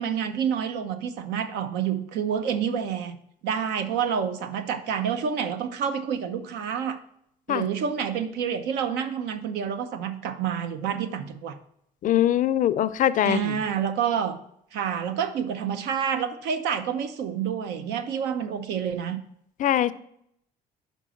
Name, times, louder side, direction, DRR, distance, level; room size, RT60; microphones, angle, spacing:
voice 1, 0.0-3.2 3.4-7.0 7.5-11.6 13.2-14.4 14.7-19.2, right 7 dB, 85° right, 0.8 m, -28 dB
voice 2, 12.0-13.6 19.6-19.9, left 11 dB, 50° left, 0.4 m, -22 dB
5.4 x 5.1 x 6.3 m
cardioid pair, 110°, 17 cm